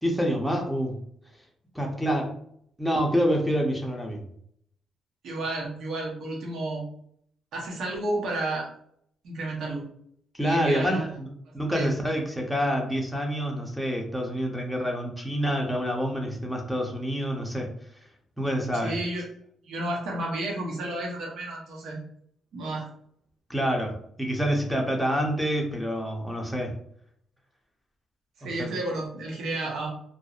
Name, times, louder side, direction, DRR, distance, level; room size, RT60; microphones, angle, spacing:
voice 1, 0.0-1.0 1.7-2.4 2.8-4.2 10.3-11.3 11.5-17.7 18.4-19.0 23.5-26.7 28.4-28.7, equal, ahead, 1 dB, 0.6 m, -27 dB
voice 2, 5.2-6.8 7.5-8.7 9.2-9.9 10.4-11.1 11.7-11.9 18.7-19.3 19.6-22.0 22.5-22.9 28.4-29.9, right 2 dB, 70° right, -2 dB, 0.8 m, -31 dB
2.5 x 2.0 x 2.3 m, 0.66 s
cardioid pair, 90°, 0 cm